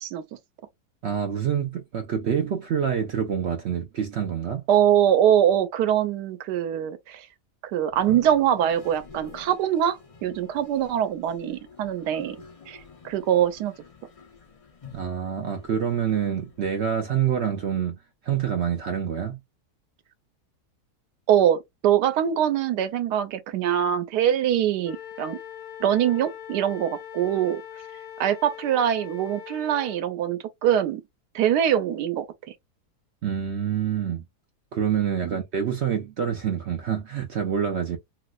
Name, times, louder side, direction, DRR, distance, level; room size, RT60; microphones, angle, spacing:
voice 1, 1.0-4.6 14.9-18.0 18.2-19.4 33.2-34.2 34.7-38.0, right 8 dB, 65° right, 0.6 m, -26 dB
voice 2, 4.7-7.3 7.6-12.4 12.7-12.8 13.0-13.7 21.3-25.4 25.8-27.6 28.2-31.0 31.3-32.3 35.2-35.4, right 10 dB, 90° right, 1.3 m, -23 dB
Toilet flush, 7.9-17.0, left 5 dB, 45° left, 0.4 m, -48 dB
Wind instrument woodwind instrument, 24.8-30.0, left 10 dB, 75° left, 1.1 m, -41 dB
3.1 x 3.0 x 2.3 m
omnidirectional pair, 1.7 m